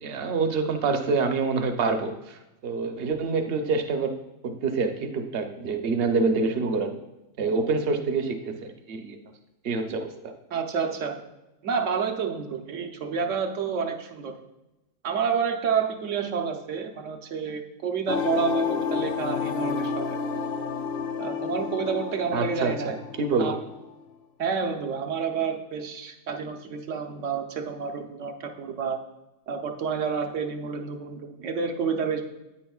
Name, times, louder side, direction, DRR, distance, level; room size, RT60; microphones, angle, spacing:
voice 1, 0.0-4.1 4.4-7.0 7.4-9.2 9.6-10.3 22.3-23.6, right 4 dB, 55° right, 6 dB, 0.9 m, -26 dB
voice 2, 10.5-11.2 11.6-14.3 15.0-20.2 21.2-23.0 23.4-23.6 24.4-29.0 29.5-32.2, right 6 dB, 75° right, 4 dB, 1.2 m, -29 dB
sound 1, 18.1-23.9, left 6 dB, 60° left, 0.7 m, -30 dB
9.9 x 8.7 x 2.3 m, 0.98 s
omnidirectional pair, 1.3 m